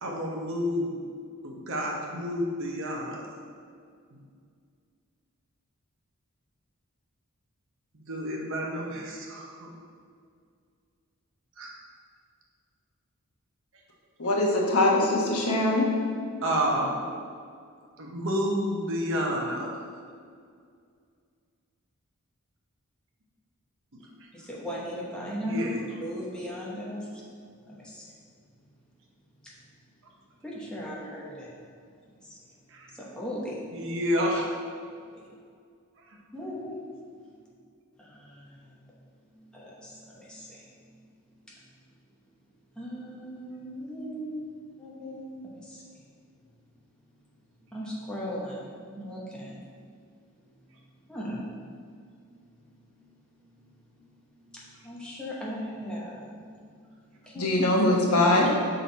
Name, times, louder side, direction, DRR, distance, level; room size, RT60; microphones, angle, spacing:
voice 1, 0.0-1.0 1.4-3.3 4.1-4.2 7.9-9.7 11.6-11.7 16.4-17.1 18.0-19.7 25.4-25.8 32.7-32.9 33.7-34.5, equal, 65° right, -1 dB, 0.9 m, -30 dB
voice 2, 14.2-15.9 57.4-58.5, left 1 dB, 90° left, -2 dB, 1.1 m, -22 dB
voice 3, 24.3-27.2 27.7-28.1 30.4-31.6 32.2-32.4 32.9-34.0 36.3-36.9 38.0-38.8 39.4-40.6 42.8-44.5 44.8-45.8 47.7-49.6 51.1-51.5 51.9-52.1 52.8-53.1 53.4-53.7 54.4-56.6 57.2-57.5, equal, 5° left, -6 dB, 1.1 m, -38 dB
6.0 x 3.9 x 4.1 m, 2.2 s
head